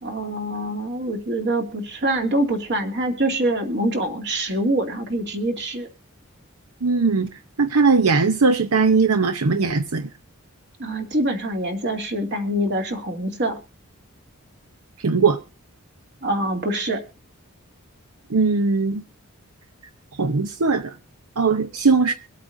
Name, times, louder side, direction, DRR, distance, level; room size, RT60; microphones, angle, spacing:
voice 1, 0.0-5.9 10.8-13.6 16.2-17.0, right 1 dB, 55° right, 2.5 m, -25 dB
voice 2, 6.8-7.3 7.6-10.1 15.0-15.4 18.3-19.0 20.2-20.9 21.4-22.1, right 4 dB, 90° right, 0.8 m, -19 dB
24.0 x 8.4 x 2.6 m
head